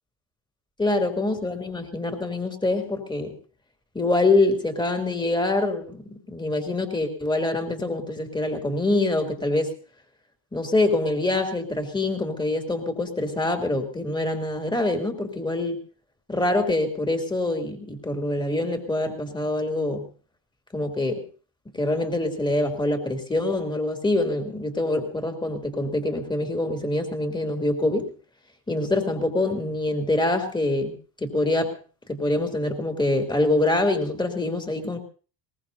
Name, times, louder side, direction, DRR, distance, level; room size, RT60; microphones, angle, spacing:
voice 1, 0.8-3.3 3.9-9.7 10.5-15.8 16.3-20.1 20.7-21.2 21.7-28.1 28.7-31.7 32.1-35.0, left 2 dB, 10° left, 4 dB, 3.2 m, -25 dB
22.0 x 18.5 x 2.8 m, 0.38 s
supercardioid pair, 85°, 46 cm